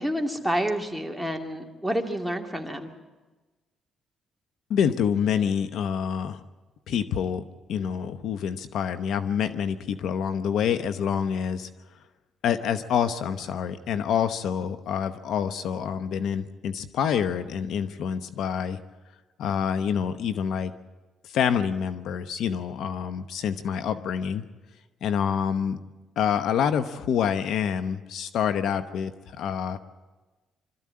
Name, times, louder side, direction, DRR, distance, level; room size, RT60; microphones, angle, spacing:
voice 1, 0.0-2.9, equal, ahead, 4 dB, 2.5 m, -29 dB
voice 2, 4.7-6.4 6.9-11.7 12.4-18.8 19.4-20.7 21.2-24.4 25.0-25.8 26.2-29.1 29.4-29.8, left 8 dB, 75° left, 11 dB, 0.9 m, -27 dB
25.0 x 13.5 x 8.6 m, 1.2 s
cardioid pair, 90°, 0 cm